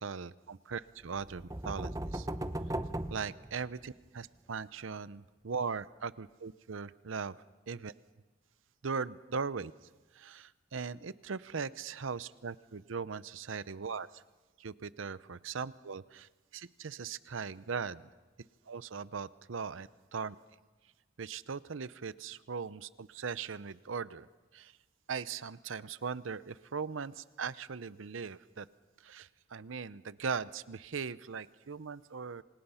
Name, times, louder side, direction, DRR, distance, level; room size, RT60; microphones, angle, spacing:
voice 1, 0.0-2.3 3.1-7.3 7.7-7.9 8.8-9.7 10.2-14.1 14.6-16.3 16.5-18.0 18.7-20.3 21.2-24.3 24.5-24.7 25.1-28.7 29.0-32.4, right 5 dB, 80° right, 16 dB, 0.7 m, -39 dB
sound 1, 1.1-4.1, right 1 dB, 15° right, 0.7 m, -38 dB
27.0 x 26.5 x 5.7 m, 1.3 s
head